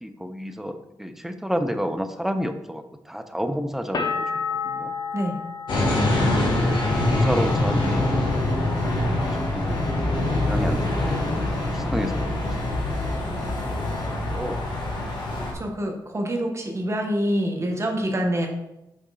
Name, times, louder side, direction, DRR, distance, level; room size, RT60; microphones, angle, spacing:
voice 1, 0.0-4.9 6.5-8.4 9.0-12.6 12.9-13.2 13.6-14.7, equal, 5° right, 8 dB, 0.7 m, -31 dB
sound 1, 3.9-9.6 9.9-10.6, left 5 dB, 55° left, 0.9 m, -33 dB
sound 2, 5.7-15.5, left 1 dB, 70° left, 1.8 m, -24 dB
sound 3, 6.9-15.4, left 4 dB, 20° left, 2.7 m, -42 dB
voice 2, 15.5-18.5, equal, 35° right, 1 dB, 1.4 m, -26 dB
5.9 x 5.4 x 4.1 m, 0.90 s
cardioid pair, 85°, 8 cm